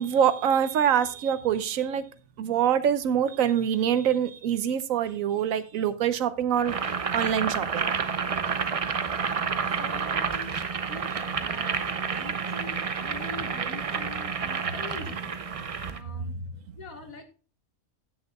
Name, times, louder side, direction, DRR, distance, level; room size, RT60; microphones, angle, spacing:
voice 1, 0.0-2.0 2.4-6.8 7.1-7.9 12.1-12.3, right 9 dB, 75° right, 13 dB, 1.1 m, -25 dB
Boiling, 6.6-16.0, right 6 dB, 60° right, 0.3 m, -29 dB
voice 2, 9.8-10.6 10.9-11.1 11.4-15.4 15.9-16.3 16.8-17.2, left 3 dB, 75° left, 5 dB, 2.0 m, -44 dB
15.5 x 6.6 x 2.3 m, 0.36 s
omnidirectional pair, 1.5 m